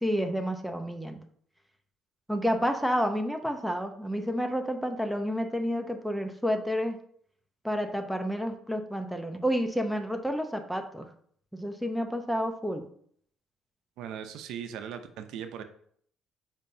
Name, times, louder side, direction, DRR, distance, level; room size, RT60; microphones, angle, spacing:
voice 1, 0.0-1.2 2.3-7.0 7.6-11.1 11.5-12.9, equal, ahead, 5 dB, 0.7 m, -30 dB
voice 2, 14.0-15.6, right 8 dB, 80° right, 8 dB, 0.6 m, -39 dB
7.3 x 5.1 x 2.7 m, 0.62 s
cardioid pair, 125°, 0 cm